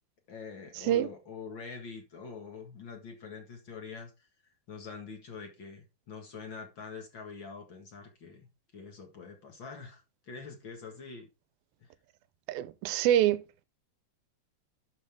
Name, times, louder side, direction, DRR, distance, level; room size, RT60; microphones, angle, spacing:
voice 1, 0.3-11.3 11.8-11.9, left 5 dB, 45° left, 1.8 m, -45 dB
voice 2, 12.5-13.6, right 12 dB, 85° right, 2.5 m, -26 dB
11.5 x 5.9 x 3.6 m
omnidirectional pair, 4.2 m